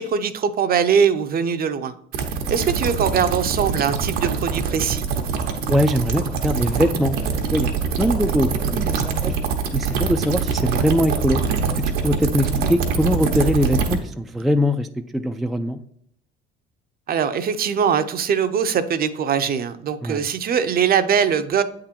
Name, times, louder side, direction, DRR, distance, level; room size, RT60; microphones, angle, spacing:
voice 1, 0.0-1.9 2.5-5.0 17.1-21.6, right 7 dB, 45° right, 10 dB, 0.6 m, -21 dB
sound 1, 2.1-14.0, right 5 dB, 85° right, 1.0 m, -24 dB
voice 2, 5.7-7.7 8.0-9.4 9.7-11.4 11.7-15.8 20.0-20.3, equal, ahead, 6 dB, 0.3 m, -22 dB
8.1 x 3.8 x 4.3 m, 0.71 s
supercardioid pair, 95°, 21 cm